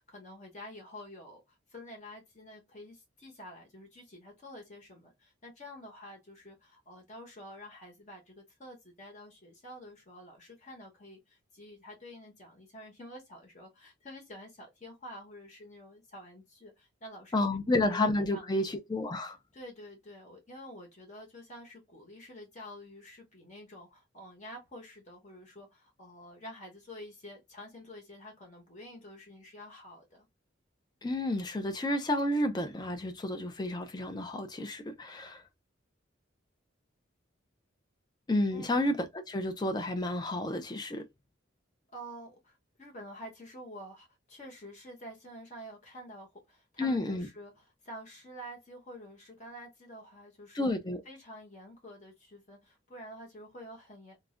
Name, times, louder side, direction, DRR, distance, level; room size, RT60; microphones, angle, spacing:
voice 1, 0.0-17.4 17.9-18.0 18.3-18.8 19.5-30.3 38.5-38.8 41.9-50.7 51.0-54.2, equal, 40° left, 0.8 m, -49 dB
voice 2, 17.3-19.4 31.0-35.4 38.3-41.0 46.8-47.3 50.5-51.0, left 1 dB, 20° left, 0.4 m, -31 dB
2.3 x 2.1 x 3.6 m
head